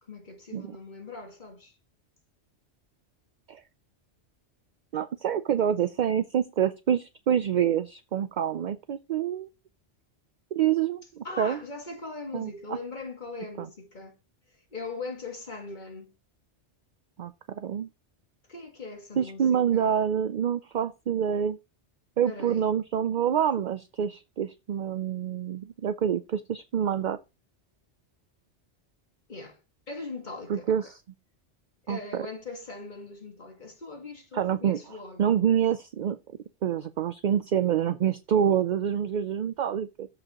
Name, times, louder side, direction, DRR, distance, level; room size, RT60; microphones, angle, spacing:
voice 1, 0.0-1.7 11.2-14.2 14.5-16.1 18.5-19.9 22.2-22.7 29.3-29.6 29.9-30.9 31.8-35.2, left 3 dB, 40° left, 1.8 m, -40 dB
voice 2, 4.9-9.5 10.5-11.6 12.3-12.8 13.6-13.7 17.2-17.9 19.2-21.6 22.2-27.2 30.5-30.9 31.9-32.2 34.3-34.8 35.2-36.2 36.6-40.1, right 9 dB, 55° right, 0.5 m, -27 dB
13.5 x 4.9 x 2.9 m
omnidirectional pair, 1.2 m